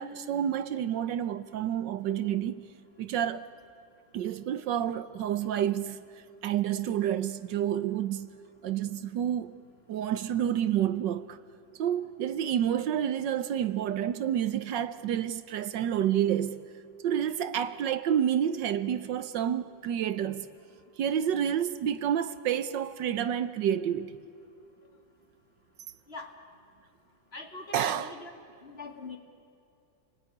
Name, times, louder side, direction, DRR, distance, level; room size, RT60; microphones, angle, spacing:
voice 1, 0.0-2.6 3.0-3.4 4.1-6.0 6.4-8.3 8.6-9.5 9.9-11.4 11.8-16.6 17.0-20.5 21.0-24.2 27.7-28.2, right 10 dB, 75° right, 1.4 m, -29 dB
voice 2, 27.3-28.3 28.6-29.2, left 3 dB, 35° left, 2.3 m, -42 dB
29.5 x 20.5 x 9.8 m
omnidirectional pair, 2.0 m